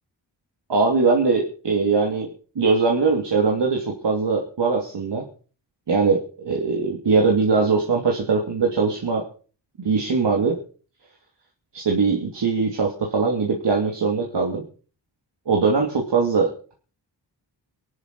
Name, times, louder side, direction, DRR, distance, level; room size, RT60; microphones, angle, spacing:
voice 1, 0.7-2.3 2.5-5.3 5.9-9.2 9.8-10.6 11.7-14.6 15.5-16.7, right 4 dB, 70° right, 0 dB, 2.9 m, -21 dB
21.5 x 12.5 x 4.6 m, 0.41 s
cardioid pair, 55°, 43 cm